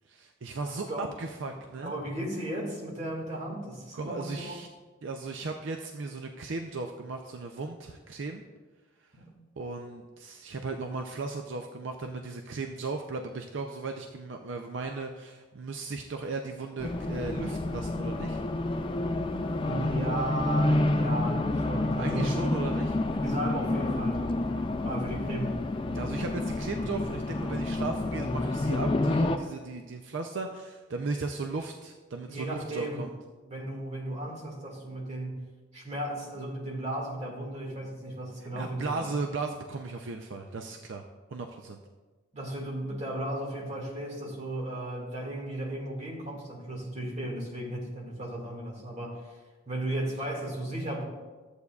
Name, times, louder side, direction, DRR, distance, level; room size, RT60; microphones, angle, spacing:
voice 1, 0.1-1.9 3.9-4.7 5.0-8.4 9.6-18.4 22.0-23.0 25.9-33.1 38.6-41.0 41.3-41.8, right 3 dB, 70° right, 4 dB, 0.5 m, -36 dB
voice 2, 0.6-1.0 1.4-1.5 1.8-4.6 9.1-9.3 19.6-22.4 23.2-24.3 24.8-25.6 32.3-33.0 33.4-35.4 35.7-39.2 42.3-49.2 49.7-51.0, right 1 dB, 35° right, -2 dB, 1.9 m, -35 dB
Race car auto racing, 16.8-29.4, left 2 dB, 25° left, 0.4 m, -29 dB
13.5 x 8.1 x 2.3 m, 1.3 s
head